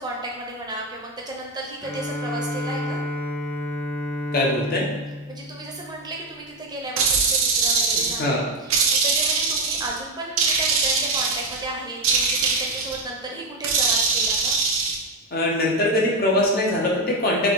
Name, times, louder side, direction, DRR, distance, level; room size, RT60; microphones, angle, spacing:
voice 1, 0.0-3.0 5.3-14.6, right 2 dB, 20° right, -2 dB, 0.8 m, -34 dB
Bowed string instrument, 1.8-6.5, left 1 dB, 5° left, 0.3 m, -31 dB
voice 2, 4.3-4.9 7.9-8.5 15.3-17.5, left 1 dB, 50° left, -2 dB, 0.9 m, -22 dB
sound 1, 7.0-8.3 8.7-9.9 10.4-11.6 12.0-13.0 13.6-15.0, right 4 dB, 85° right, 0.7 m, -22 dB
3.5 x 3.3 x 4.2 m, 1.3 s
head